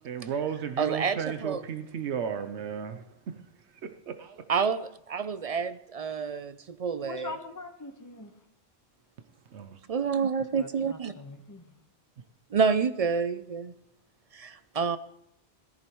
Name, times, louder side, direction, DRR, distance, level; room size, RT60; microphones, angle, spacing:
voice 1, 0.0-3.4 3.8-4.4 9.5-9.8, right 7 dB, 85° right, 1.0 m, -34 dB
voice 2, 0.8-1.6 4.5-7.4 9.9-11.1 12.5-13.7 14.3-15.0, right 6 dB, 50° right, 0.4 m, -28 dB
voice 3, 7.0-8.3 10.5-11.8, left 3 dB, 15° left, 1.1 m, -42 dB
16.5 x 14.0 x 3.1 m
omnidirectional pair, 1.1 m